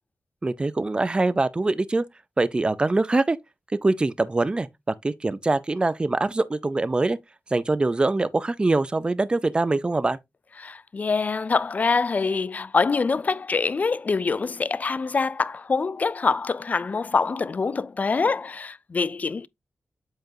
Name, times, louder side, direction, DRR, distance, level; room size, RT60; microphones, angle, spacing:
voice 1, 0.4-2.1 2.4-3.4 3.7-7.2 7.5-10.2, right 2 dB, 25° right, 0.5 m, -23 dB
voice 2, 10.6-19.5, left 4 dB, 40° left, 0.3 m, -25 dB
7.7 x 4.6 x 2.6 m
wide cardioid pair, 105°, 4 cm